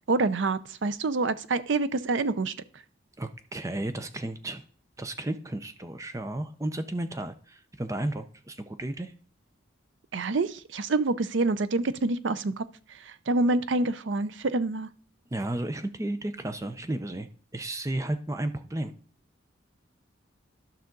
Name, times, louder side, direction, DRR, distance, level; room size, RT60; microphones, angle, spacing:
voice 1, 0.1-2.5 10.1-12.6 13.1-14.9, right 3 dB, 70° right, 14 dB, 0.5 m, -27 dB
voice 2, 3.2-4.6 5.0-9.1 15.3-17.3 17.5-18.9, right 1 dB, 15° right, 9 dB, 0.5 m, -33 dB
12.0 x 5.7 x 3.8 m, 0.43 s
head